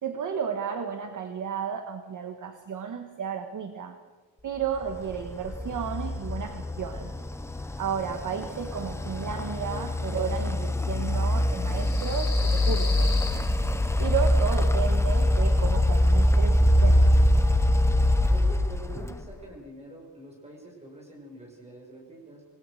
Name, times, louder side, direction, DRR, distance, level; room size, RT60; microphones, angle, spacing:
voice 1, 0.0-4.0 4.4-7.1 7.8-13.1 14.0-17.1, right 7 dB, 40° right, 6 dB, 1.4 m, -33 dB
sound 1, 4.9-19.3, left 1 dB, 5° left, 0.7 m, -24 dB
sound 2, 6.8-17.6, left 4 dB, 55° left, 7.9 m, -43 dB
voice 2, 18.3-22.4, right 2 dB, 15° right, -1 dB, 6.0 m, -45 dB
27.5 x 19.5 x 6.5 m, 1.3 s
wide cardioid pair, 180°, 45 cm